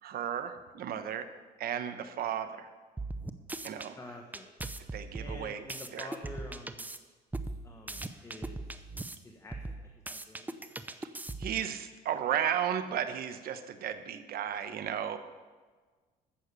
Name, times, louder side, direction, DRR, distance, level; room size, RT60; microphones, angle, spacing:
voice 1, 0.0-1.3 1.6-2.7 3.6-4.0 4.9-5.6 5.9-6.1 11.0-11.1 11.4-15.2, right 9 dB, 65° right, 10 dB, 1.1 m, -34 dB
sound 1, 3.0-3.9 4.3-7.0 7.3-9.2 9.5-11.7, right 2 dB, 10° right, 0.7 m, -39 dB
voice 2, 3.9-4.5 5.2-6.9 7.6-8.9 9.2-10.7 15.0-15.2, left 2 dB, 15° left, 2 dB, 1.3 m, -48 dB
14.5 x 6.5 x 6.9 m, 1.4 s
cardioid pair, 110°, 17 cm